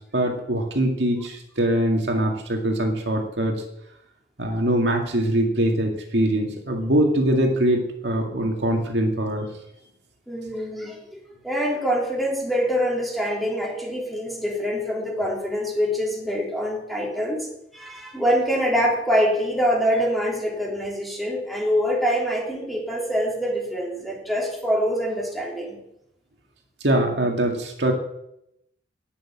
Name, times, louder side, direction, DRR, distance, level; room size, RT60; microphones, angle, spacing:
voice 1, 0.1-3.5 4.4-9.5 26.8-27.9, right 1 dB, 80° right, 2 dB, 2.1 m, -22 dB
voice 2, 10.3-17.5 17.7-25.8, equal, ahead, -3 dB, 3.2 m, -25 dB
11.0 x 6.5 x 8.9 m, 0.80 s
head